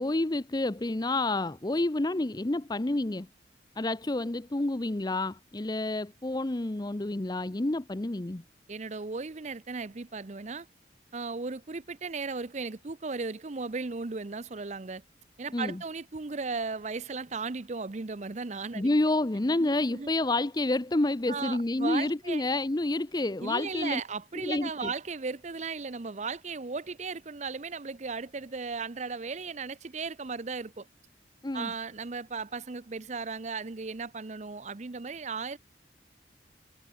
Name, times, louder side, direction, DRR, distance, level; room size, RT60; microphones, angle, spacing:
voice 1, 0.0-3.3 3.8-8.4 15.5-15.8 18.7-24.0 24.4-24.9 31.4-31.7, left 2 dB, 20° left, 0.6 m, -29 dB
voice 2, 8.7-10.7 11.1-15.0 15.4-18.9 19.6-20.1 21.3-22.4 23.4-30.9 31.5-35.6, right 4 dB, 40° right, 0.7 m, -36 dB
head